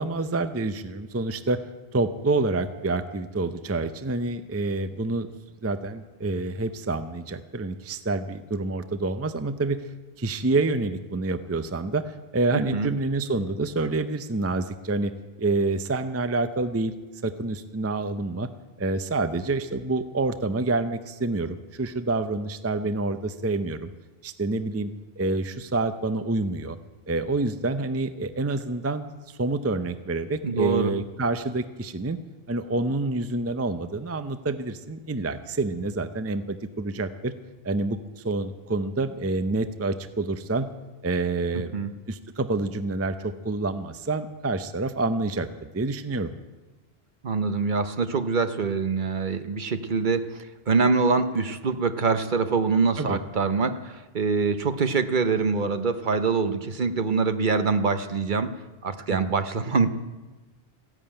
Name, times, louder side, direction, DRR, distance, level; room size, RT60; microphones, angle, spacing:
voice 1, 0.0-1.6 1.9-5.3 5.6-9.8 10.2-15.1 15.4-16.9 17.2-18.5 18.8-23.9 24.2-24.9 25.2-26.8 27.1-32.2 32.5-37.3 37.6-40.7 41.0-41.7 42.1-46.3 53.0-53.2 59.1-59.2, right 3 dB, 20° right, 10 dB, 0.5 m, -27 dB
voice 2, 30.4-30.9 41.7-41.9 47.2-50.4 50.7-58.5 58.8-59.9, right 4 dB, 50° right, 10 dB, 0.9 m, -24 dB
15.0 x 11.0 x 8.8 m, 1.2 s
omnidirectional pair, 1.1 m